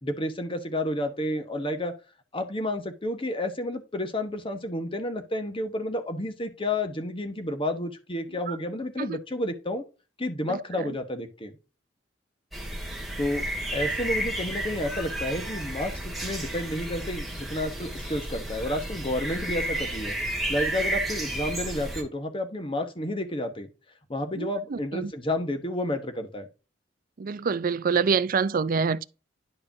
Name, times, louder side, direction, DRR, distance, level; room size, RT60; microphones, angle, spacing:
voice 1, 0.0-1.9 2.3-9.8 10.2-11.5 13.2-13.4 13.7-20.2 20.5-23.7 24.1-26.5, left 1 dB, 30° left, 1.2 m, -30 dB
voice 2, 10.4-11.0 24.4-25.1 27.2-29.0, right 5 dB, 50° right, 0.4 m, -27 dB
sound 1, 12.5-22.0, right 1 dB, ahead, 2.1 m, -32 dB
11.0 x 4.9 x 2.7 m
head